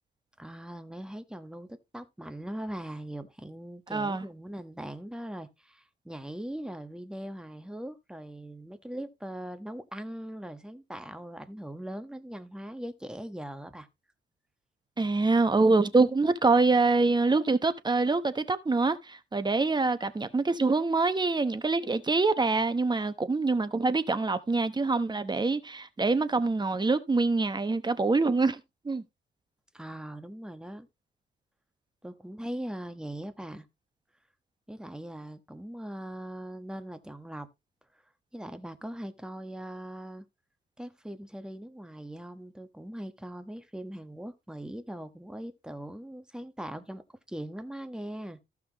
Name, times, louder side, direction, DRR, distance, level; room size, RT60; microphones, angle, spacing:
voice 1, 0.4-13.9 29.7-30.9 32.0-33.7 34.7-37.5 38.3-40.2 40.8-48.4, right 1 dB, 5° right, 1.2 m, -40 dB
voice 2, 3.9-4.2 15.0-28.6 28.8-29.0, right 3 dB, 20° right, 1.0 m, -25 dB
14.5 x 6.0 x 3.0 m
cardioid pair, 90°, 20 cm